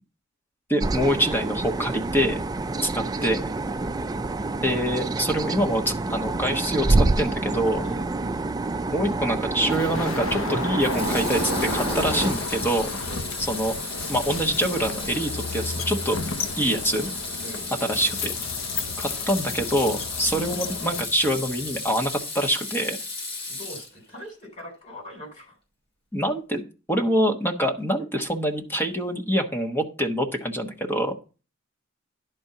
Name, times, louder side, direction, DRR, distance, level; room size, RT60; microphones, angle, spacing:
voice 1, 0.7-2.4 2.8-3.5 4.6-7.9 8.9-13.0 13.5-13.7 14.1-16.2 16.6-17.1 17.8-18.3 19.0-23.0 26.1-26.6 26.9-31.1, equal, 10° left, 4 dB, 1.2 m, -25 dB
sound 1, 0.8-12.3, right 2 dB, 20° right, 0.4 m, -27 dB
Water tap faucet / Sink (filling or washing), 9.1-9.5 10.8-24.2, left 3 dB, 55° left, 3.3 m, -35 dB
sound 2, 9.7-22.2, left 4 dB, 75° left, 0.8 m, -33 dB
voice 2, 23.5-25.6, equal, 35° left, 2 dB, 4.1 m, -41 dB
11.0 x 4.4 x 6.6 m, 0.33 s
head